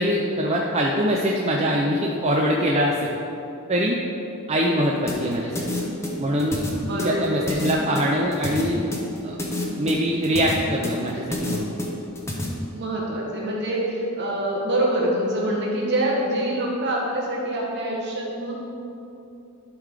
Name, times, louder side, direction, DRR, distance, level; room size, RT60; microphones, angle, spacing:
voice 1, 0.0-3.1 3.7-4.0 4.5-5.6 6.2-6.6 7.0-8.8 9.2-9.4 9.8-11.7, equal, 30° right, -1 dB, 0.5 m, -23 dB
sound 1, 5.1-12.5, left 1 dB, 15° left, 0.9 m, -29 dB
voice 2, 6.8-7.6 12.7-18.5, right 1 dB, 55° right, -4 dB, 1.6 m, -25 dB
11.0 x 3.8 x 4.9 m, 2.9 s
head